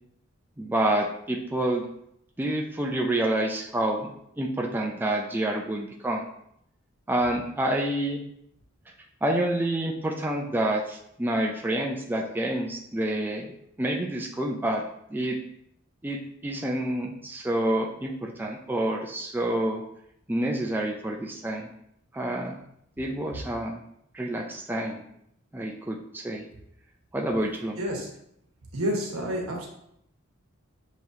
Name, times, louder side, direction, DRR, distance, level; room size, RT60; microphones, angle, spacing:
voice 1, 0.6-1.8 2.4-4.1 4.4-6.2 7.1-8.2 9.2-13.5 13.8-14.8 15.1-15.4 16.0-19.8 20.3-21.7 22.1-22.6 23.0-23.8 24.1-25.0 25.5-26.4 27.1-27.8, right 1 dB, 10° right, 0 dB, 0.3 m, -28 dB
voice 2, 27.8-28.1 28.7-29.7, equal, 90° right, -1 dB, 1.2 m, -29 dB
6.6 x 3.0 x 2.7 m, 0.74 s
head